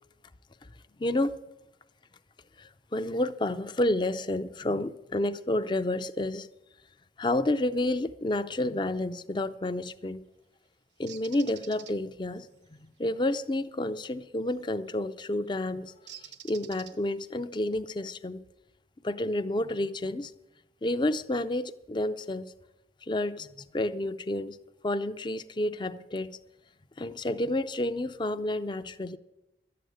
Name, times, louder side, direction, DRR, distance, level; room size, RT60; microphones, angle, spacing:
voice 1, 1.0-1.4 2.6-6.5 7.2-10.2 11.0-12.5 13.0-15.9 16.2-18.4 19.0-20.3 20.8-22.5 23.1-24.6 24.8-26.4 27.0-29.2, left 1 dB, 25° left, 0.5 m, -30 dB
Bird, 11.1-11.9 14.5-14.8 16.1-17.3, right 10 dB, 80° right, 0.9 m, -47 dB
12.0 x 7.7 x 9.3 m
head